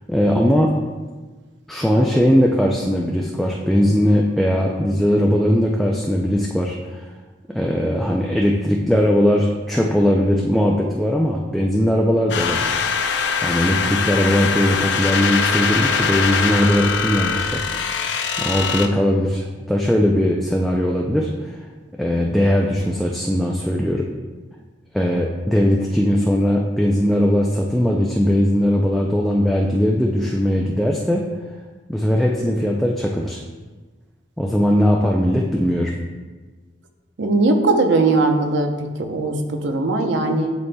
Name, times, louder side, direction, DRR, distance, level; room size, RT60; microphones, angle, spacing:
voice 1, 0.1-0.7 1.7-7.0 7.5-12.8 13.4-17.6 18.4-21.5 22.0-24.1 24.9-31.3 31.9-33.4 34.4-35.9, equal, ahead, -2 dB, 0.3 m, -19 dB
sound 1, 12.3-18.9, left 5 dB, 75° left, 0.5 m, -22 dB
voice 2, 37.2-40.5, right 2 dB, 80° right, 5 dB, 0.7 m, -19 dB
10.5 x 4.2 x 2.2 m, 1.3 s
head